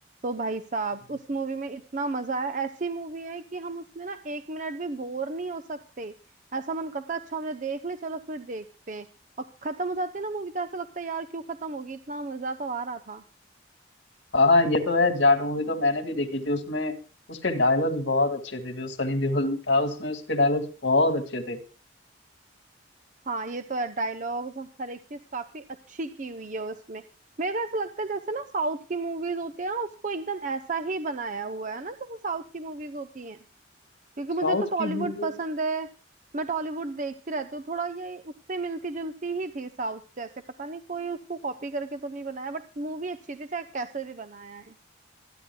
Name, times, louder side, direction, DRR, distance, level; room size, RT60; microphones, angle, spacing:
voice 1, 0.2-6.1 6.5-9.1 9.4-13.2 23.3-27.0 27.4-33.4 34.2-35.9 36.3-40.3 40.6-44.7, right 3 dB, 45° right, 9 dB, 0.7 m, -32 dB
voice 2, 14.3-16.9 17.3-21.6 34.4-35.3, left 2 dB, 75° left, 6 dB, 2.1 m, -24 dB
26.5 x 10.5 x 2.3 m, 0.35 s
head